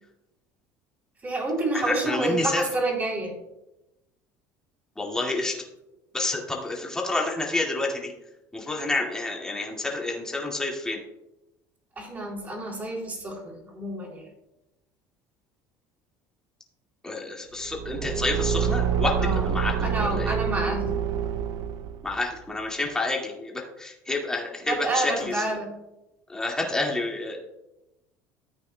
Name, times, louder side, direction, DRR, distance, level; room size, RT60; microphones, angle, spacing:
voice 1, 1.2-3.3 12.0-14.3 19.2-19.5 19.8-20.9 24.7-25.7, right 2 dB, 20° right, -1 dB, 3.5 m, -29 dB
voice 2, 1.7-2.6 5.0-5.5 6.1-8.1 8.5-11.0 17.0-20.3 22.0-25.6 26.3-27.4, left 2 dB, 10° left, -1 dB, 2.0 m, -29 dB
Car / Engine, 17.6-22.2, right 8 dB, 55° right, 0.5 m, -27 dB
14.0 x 8.8 x 2.2 m, 0.92 s
cardioid pair, 150°, 7 cm